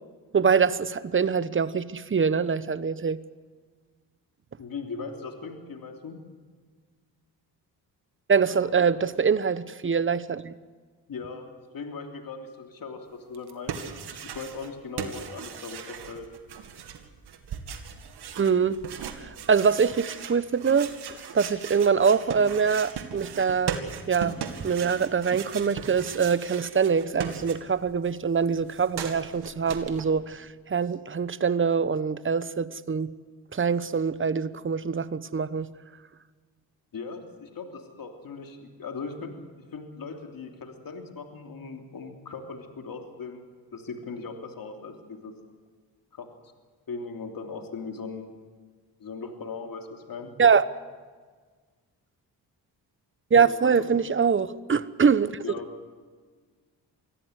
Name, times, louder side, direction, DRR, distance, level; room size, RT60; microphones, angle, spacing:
voice 1, 0.3-3.2 8.3-10.5 18.4-18.8 19.2-20.9 21.3-23.8 24.1-33.1 33.5-35.7 50.4-50.6 53.3-55.4, right 6 dB, 30° right, 16 dB, 1.0 m, -24 dB
voice 2, 4.6-6.2 8.5-8.9 11.1-11.5 11.7-16.3 36.9-39.3 39.7-43.4 43.7-45.3 46.1-46.3 46.9-48.3 49.0-50.4 53.3-53.9 55.4-55.7, left 4 dB, 60° left, 3 dB, 3.1 m, -39 dB
sound 1, 13.3-14.7 15.0-27.9 28.2-30.0, right 7 dB, 75° right, 2.2 m, -38 dB
24.5 x 16.0 x 8.2 m, 1.5 s
cardioid pair, 70°, 40 cm